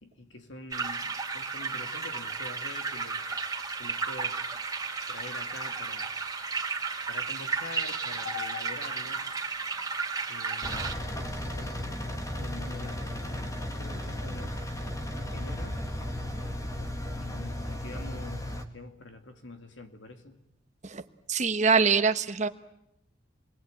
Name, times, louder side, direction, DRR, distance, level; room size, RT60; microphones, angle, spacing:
voice 1, 0.0-3.2 3.8-4.6 5.1-6.1 7.1-9.3 10.3-11.1 11.5-11.8 12.4-13.5 13.8-15.0 15.3-15.8 16.4-16.9 17.2-20.4, left 3 dB, 75° left, 6 dB, 2.5 m, -45 dB
sound 1, 0.7-10.9, right 4 dB, 20° right, 3.0 m, -33 dB
Engine, 10.6-18.6, left 1 dB, 15° left, 1.7 m, -35 dB
voice 2, 21.3-22.5, right 5 dB, 35° right, 10 dB, 1.1 m, -24 dB
28.0 x 22.0 x 8.9 m, 0.82 s
head